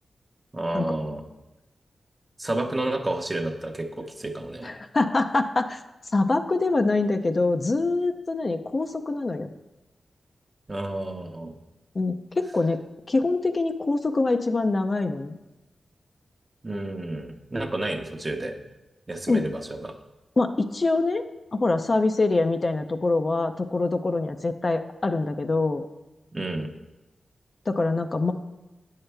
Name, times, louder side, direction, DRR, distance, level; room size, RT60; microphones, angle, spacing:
voice 1, 0.5-1.2 2.4-4.7 10.7-11.6 16.6-18.5 19.1-19.9 26.3-26.7, right 1 dB, 30° right, 4 dB, 0.8 m, -30 dB
voice 2, 4.6-5.8 6.1-9.5 12.0-12.8 13.1-15.4 19.3-19.4 20.4-21.2 21.5-25.8 27.7-28.3, left 3 dB, 50° left, 7 dB, 0.4 m, -24 dB
8.7 x 5.6 x 3.4 m, 1.0 s
cardioid pair, 45°, 0 cm